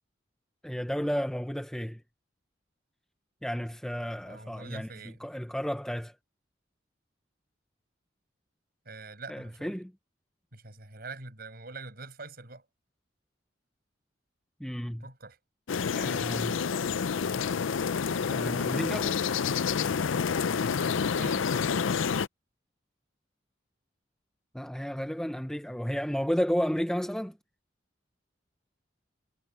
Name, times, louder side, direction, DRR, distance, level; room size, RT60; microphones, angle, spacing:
voice 1, 0.6-2.0 3.4-4.9 5.2-6.1 9.3-9.9 14.6-15.0 15.9-16.6 18.3-19.2 24.5-27.4, equal, 5° left, 0.7 m, -32 dB
voice 2, 4.2-5.2 8.9-9.8 10.5-12.7 15.0-15.4 20.4-21.5, right 3 dB, 50° right, 7.1 m, -44 dB
sound 1, 15.7-22.3, left 6 dB, 85° left, 0.5 m, -28 dB
head